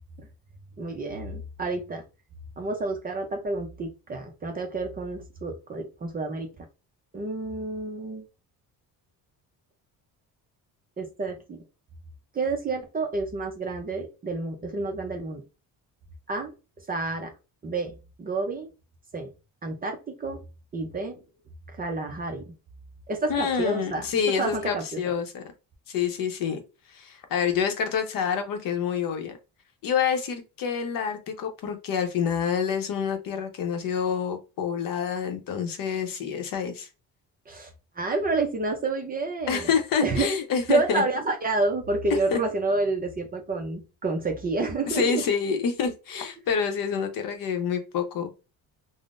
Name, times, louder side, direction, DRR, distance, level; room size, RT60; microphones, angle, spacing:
voice 1, 0.8-2.0 2.6-6.5 7.1-8.3 11.0-11.6 12.3-15.4 16.3-16.5 16.9-17.3 17.6-17.9 18.2-18.7 19.1-19.3 19.6-20.4 20.7-21.2 21.8-22.5 23.1-24.1 24.4-25.0 37.5-37.7 38.0-39.7 40.0-40.3 40.7-45.2, right 3 dB, 25° right, 3 dB, 0.4 m, -29 dB
voice 2, 23.3-25.4 25.9-26.6 26.9-29.4 29.8-36.9 39.5-41.0 42.3-42.4 44.9-48.3, left 7 dB, 60° left, 7 dB, 0.7 m, -27 dB
3.7 x 2.0 x 2.4 m, 0.29 s
cardioid pair, 155°, 39 cm